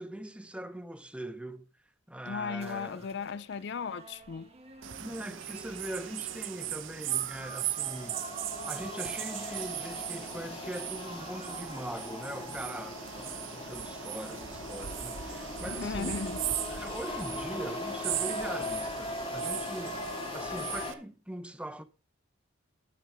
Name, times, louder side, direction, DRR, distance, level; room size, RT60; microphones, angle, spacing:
voice 1, 0.0-1.6 2.1-3.1 5.0-8.2 8.7-16.2 16.6-21.8, right 1 dB, 5° right, 0.8 m, -41 dB
voice 2, 2.3-4.5 15.7-16.4, left 5 dB, 60° left, 0.5 m, -36 dB
sound 1, 2.6-12.0, right 3 dB, 35° right, 2.1 m, -49 dB
sound 2, 4.8-20.9, right 11 dB, 75° right, 0.9 m, -38 dB
sound 3, 7.4-20.9, left 2 dB, 30° left, 2.0 m, -39 dB
12.0 x 9.7 x 3.6 m
head